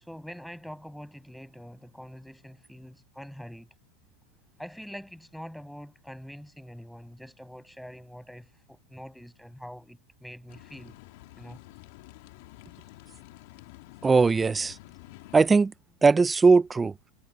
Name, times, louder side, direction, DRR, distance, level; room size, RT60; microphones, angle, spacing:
voice 1, 0.1-3.7 4.6-11.0 11.3-11.6, equal, ahead, 7.1 m, -44 dB
sound 1, 10.5-15.5, left 21 dB, 65° left, 3.6 m, -49 dB
voice 2, 14.0-14.8 15.3-15.7 16.0-16.9, right 4 dB, 15° right, 0.9 m, -19 dB
hypercardioid pair, 105°, 0 cm